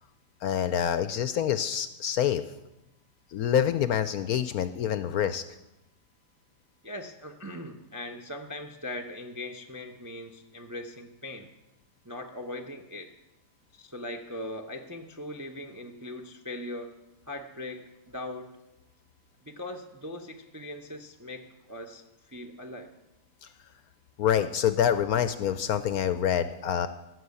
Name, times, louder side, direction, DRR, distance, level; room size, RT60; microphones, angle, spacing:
voice 1, 0.4-2.4 3.3-5.4 23.4-23.5 24.2-26.9, left 9 dB, 70° left, 11 dB, 0.9 m, -26 dB
voice 2, 6.8-11.5 12.0-13.1 13.7-16.9 17.3-18.5 19.4-22.9, left 1 dB, 25° right, 3 dB, 0.4 m, -40 dB
16.0 x 6.4 x 8.3 m, 0.95 s
omnidirectional pair, 1.9 m